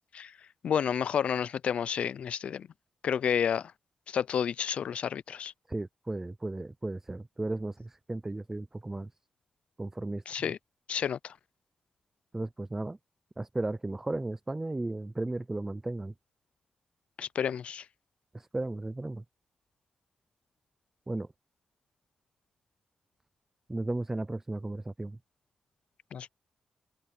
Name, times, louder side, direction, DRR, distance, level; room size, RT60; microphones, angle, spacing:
voice 1, 0.6-2.7 3.0-3.7 4.1-5.5 10.3-10.6 10.9-11.3 17.2-17.8 26.1-26.3, left 8 dB, 70° left, 0.5 m, -30 dB
voice 2, 5.7-9.1 9.8-10.2 12.3-13.0 13.4-16.1 18.3-19.2 21.1-21.3 23.7-25.2, right 2 dB, 20° right, 0.4 m, -35 dB
cardioid pair, 70°, 2 cm